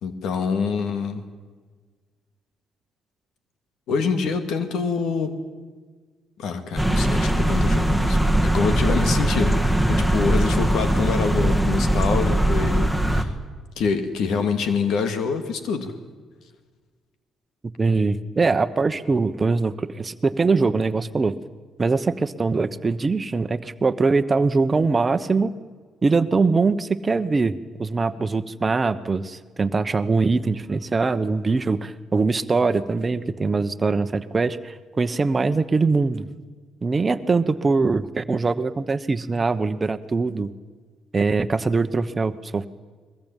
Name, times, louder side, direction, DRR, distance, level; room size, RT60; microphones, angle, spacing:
voice 1, 0.0-1.2 3.9-5.4 6.4-13.3 13.8-15.9, left 5 dB, 80° left, 9 dB, 2.3 m, -26 dB
sound 1, 6.8-13.2, right 1 dB, 5° left, 2.0 m, -20 dB
voice 2, 17.8-21.3 21.8-25.5 26.0-36.3 36.8-40.5 41.1-42.7, right 4 dB, 30° right, 11 dB, 1.1 m, -22 dB
22.5 x 20.5 x 9.1 m, 1.5 s
cardioid pair, 90°, 0 cm